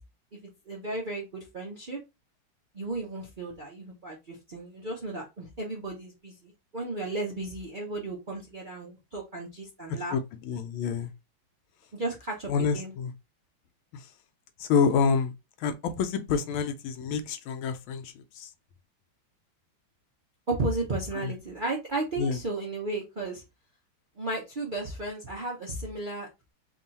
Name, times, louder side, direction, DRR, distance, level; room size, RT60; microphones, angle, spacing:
voice 1, 0.7-2.0 2.7-10.2 11.9-12.9 20.5-23.4 24.2-26.5, right 2 dB, 75° right, 0.4 m, -34 dB
voice 2, 9.9-11.1 12.5-13.1 13.9-14.1 14.6-15.3 15.6-18.5 21.1-21.3 22.2-22.4, left 6 dB, 85° left, 1.4 m, -28 dB
3.6 x 2.4 x 4.0 m
omnidirectional pair, 2.2 m